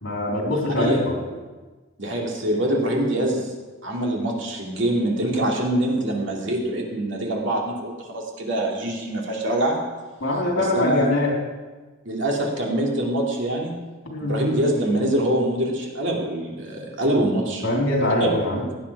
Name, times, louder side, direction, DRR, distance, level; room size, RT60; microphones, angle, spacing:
voice 1, 0.0-1.1 10.2-11.3 14.1-14.4 17.6-18.6, left 1 dB, 70° left, -1 dB, 3.5 m, -22 dB
voice 2, 2.0-3.5 3.8-9.8 10.5-11.1 12.0-13.8 14.2-17.6 18.2-18.3 18.6-18.7, right 1 dB, 60° right, -1 dB, 2.7 m, -24 dB
16.5 x 9.9 x 4.8 m, 1.3 s
head